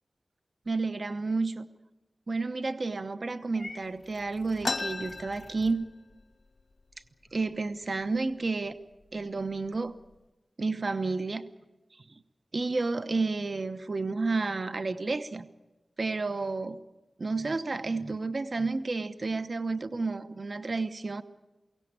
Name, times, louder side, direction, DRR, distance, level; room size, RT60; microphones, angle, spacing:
voice 1, 0.7-1.7 2.3-5.8 7.3-8.8 9.1-9.9 10.6-11.4 11.9-12.2 12.5-15.5 16.0-16.8 17.2-21.2, right 3 dB, 55° right, 11 dB, 1.0 m, -31 dB
Purr / Meow, 3.5-5.8, left 2 dB, 35° left, 2.5 m, -49 dB
sound 1, 4.6-6.2 6.6-6.7 6.9-7.5 8.1-8.3 9.0-9.2 9.6-10.1, left 3 dB, 50° left, 0.7 m, -35 dB
23.5 x 17.0 x 8.9 m, 1.1 s
wide cardioid pair, 70°, 0 cm